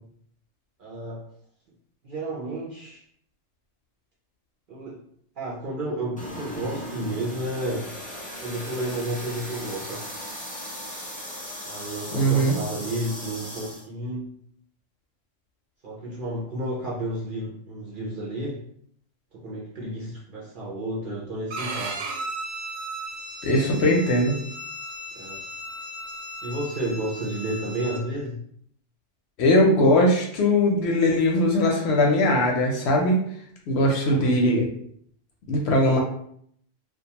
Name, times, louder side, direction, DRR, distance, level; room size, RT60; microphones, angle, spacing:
voice 1, 0.8-1.3 2.0-3.0 4.7-5.0 5.4-7.9 8.4-10.1 11.7-14.4 15.8-18.6 19.3-22.0 23.5-23.9 25.1-25.4 26.4-28.4 34.0-34.6, right 1 dB, 55° right, -4 dB, 0.6 m, -32 dB
sound 1, 6.2-13.8, equal, 15° left, 0.3 m, -37 dB
voice 2, 12.1-12.6 23.4-24.4 29.4-33.2 33.7-34.7 35.5-36.0, left 1 dB, 65° left, 0 dB, 0.7 m, -20 dB
Bowed string instrument, 21.5-28.0, right 1 dB, 85° right, 1.0 m, -36 dB
2.3 x 2.2 x 2.8 m, 0.66 s
omnidirectional pair, 1.3 m